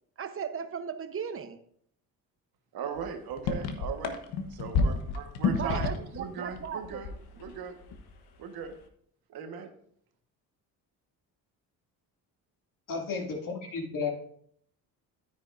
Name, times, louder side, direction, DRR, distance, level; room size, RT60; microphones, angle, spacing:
voice 1, 0.2-1.6 5.5-7.0, right 7 dB, 35° right, 10 dB, 0.9 m, -36 dB
voice 2, 2.7-4.2 4.5-7.1 7.4-7.8 8.4-8.8 9.3-9.7, right 7 dB, 70° right, 6 dB, 1.4 m, -38 dB
sound 1, 3.0-3.1 3.3-6.2 6.5-7.5 7.8-8.1, left 5 dB, 75° left, 1.2 m, -29 dB
voice 3, 12.9-14.1, left 4 dB, 55° left, 0 dB, 2.4 m, -33 dB
9.8 x 9.3 x 2.6 m, 0.66 s
supercardioid pair, 80°, 38 cm